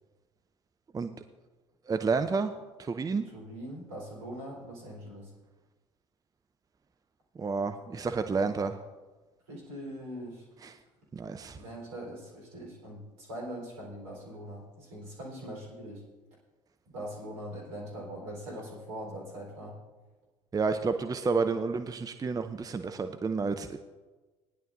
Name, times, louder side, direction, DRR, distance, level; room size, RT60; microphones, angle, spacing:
voice 1, 1.9-2.5 2.8-3.3 7.4-8.8 10.6-10.7 11.1-11.6 20.5-23.8, right 4 dB, 20° right, 9 dB, 0.6 m, -30 dB
voice 2, 3.3-5.3 9.5-10.5 11.5-16.0 16.9-19.8, equal, 75° right, -3 dB, 4.0 m, -42 dB
19.0 x 10.5 x 2.6 m, 1.2 s
figure-of-eight pair, 55°, 17 cm